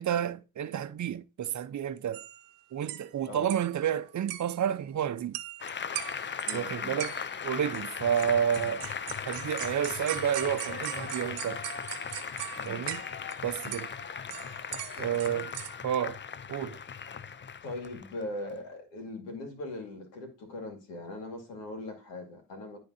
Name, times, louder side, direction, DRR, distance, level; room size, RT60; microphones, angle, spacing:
voice 1, 0.0-2.3 2.7-5.4 6.5-7.1 7.4-8.9 9.3-11.6 12.6-13.0 13.4-13.9 15.0-15.5 15.8-16.2 16.5-16.8, right 9 dB, 45° right, 0.7 m, -30 dB
sound 1, 2.1-2.5 2.8-3.1 3.4-3.9 4.3-4.7 5.3-5.7 6.0-6.7 7.0-7.4 7.7-13.4 13.6-15.8, right 14 dB, 80° right, 0.9 m, -40 dB
Applause, 5.6-18.6, left 7 dB, 30° left, 0.6 m, -38 dB
voice 2, 6.5-7.0 12.6-12.8 15.0-15.5 17.6-22.8, left 2 dB, 90° left, 2.4 m, -40 dB
11.5 x 3.9 x 2.7 m
supercardioid pair, 60°, 41 cm